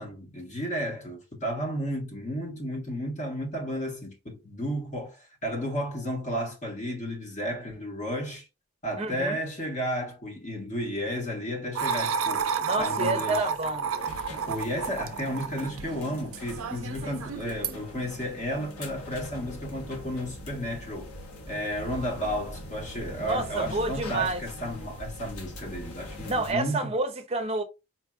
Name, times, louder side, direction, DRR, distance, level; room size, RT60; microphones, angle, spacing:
voice 1, 0.0-8.5 8.8-13.5 14.5-21.1 21.5-26.9, equal, 35° left, 1.2 m, -33 dB
voice 2, 9.0-9.4 12.6-13.9 23.2-24.4 26.3-27.6, right 2 dB, 30° right, 0.6 m, -29 dB
sound 1, 11.8-17.8, right 6 dB, 70° right, 0.4 m, -31 dB
sound 2, 14.0-26.5, left 1 dB, 90° left, 1.1 m, -42 dB
4.2 x 2.5 x 2.4 m
head